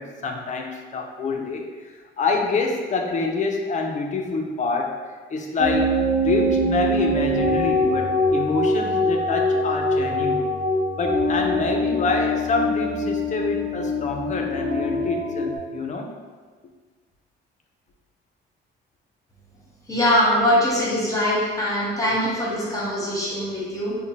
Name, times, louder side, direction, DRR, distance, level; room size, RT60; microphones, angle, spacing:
voice 1, 0.0-4.9 5.3-6.0 6.2-10.5 11.0-16.1, left 4 dB, 40° left, 2 dB, 0.4 m, -26 dB
sound 1, 5.6-15.6, left 1 dB, 65° right, 0.7 m, -23 dB
voice 2, 19.9-24.0, equal, 15° left, -7 dB, 0.8 m, -22 dB
2.7 x 2.1 x 2.8 m, 1.5 s
cardioid pair, 90°, 20 cm